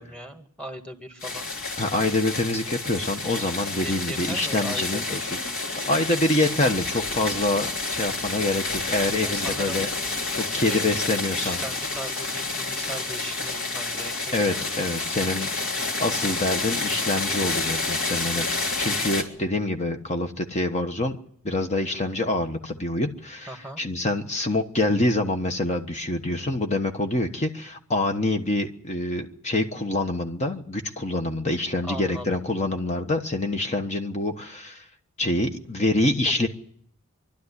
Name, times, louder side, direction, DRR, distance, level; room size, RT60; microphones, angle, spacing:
voice 1, 0.0-1.5 3.8-5.4 9.2-9.9 10.7-14.7 23.5-23.8 31.8-32.4 36.2-36.3, equal, 5° left, 5 dB, 2.0 m, -38 dB
sound 1, 1.2-19.2, left 3 dB, 65° left, 3.4 m, -29 dB
voice 2, 1.8-5.2 5.8-9.9 10.3-11.6 14.3-15.5 16.0-21.2 21.4-23.5 23.8-34.8 35.2-36.5, left 2 dB, 30° left, 5 dB, 1.2 m, -26 dB
24.5 x 12.0 x 9.8 m, 0.65 s
head